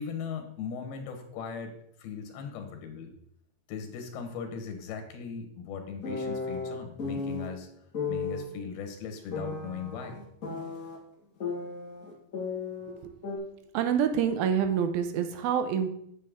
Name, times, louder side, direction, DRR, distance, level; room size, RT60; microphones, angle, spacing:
voice 1, 0.0-1.7 2.0-3.1 3.7-7.7 8.1-10.2, left 6 dB, 90° left, 5 dB, 3.2 m, -38 dB
sound 1, 6.0-7.5 7.9-8.5 9.3-11.0 11.4-13.0 13.2-13.4, left 4 dB, 35° left, 1.4 m, -34 dB
voice 2, 13.7-15.9, right 8 dB, 80° right, 8 dB, 2.6 m, -27 dB
8.5 x 7.6 x 3.6 m, 0.71 s
omnidirectional pair, 4.3 m